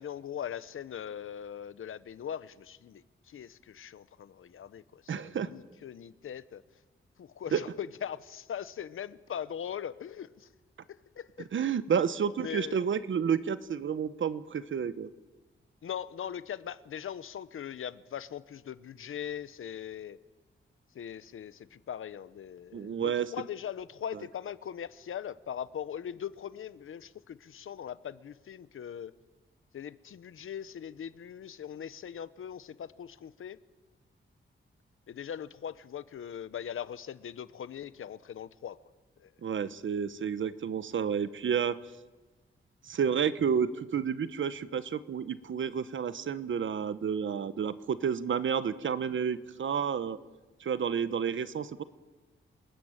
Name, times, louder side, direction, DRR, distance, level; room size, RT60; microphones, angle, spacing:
voice 1, 0.0-6.6 7.2-10.5 10.9-11.5 12.4-12.8 15.8-20.2 20.9-29.1 29.7-33.6 35.1-38.8 39.2-39.3, left 9 dB, 80° left, 16 dB, 1.0 m, -40 dB
voice 2, 5.1-5.5 7.5-7.6 11.5-15.1 22.7-23.3 39.4-41.8 42.9-50.2 50.6-51.8, right 7 dB, 70° right, 14 dB, 1.3 m, -30 dB
28.0 x 20.0 x 9.0 m, 1.2 s
wide cardioid pair, 120°, 21 cm